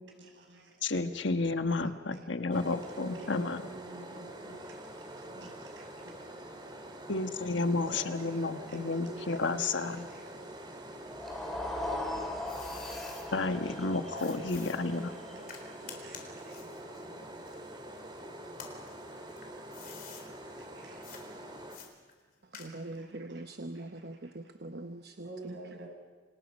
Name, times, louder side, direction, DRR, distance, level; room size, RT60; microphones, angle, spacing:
voice 1, 0.0-0.8 2.1-2.2 2.9-6.1 7.8-10.6 12.4-12.5 14.1-15.5 15.8-17.5 20.6-21.1 23.0-23.2 23.7-24.3 25.2-25.9, right 1 dB, 80° right, 6.7 m, -49 dB
voice 2, 0.8-3.6 7.1-10.1 13.3-15.1, left 3 dB, 80° left, 1.4 m, -31 dB
sound 1, 2.5-21.8, right 1 dB, 25° right, 2.8 m, -46 dB
sound 2, 11.1-17.3, left 1 dB, ahead, 3.0 m, -40 dB
sound 3, 11.8-13.3 14.2-18.1 18.5-20.3 21.0-21.2 21.7-23.0, left 7 dB, 50° left, 4.0 m, -50 dB
voice 3, 22.4-25.8, right 2 dB, 55° right, 0.9 m, -43 dB
29.5 x 26.5 x 5.4 m
head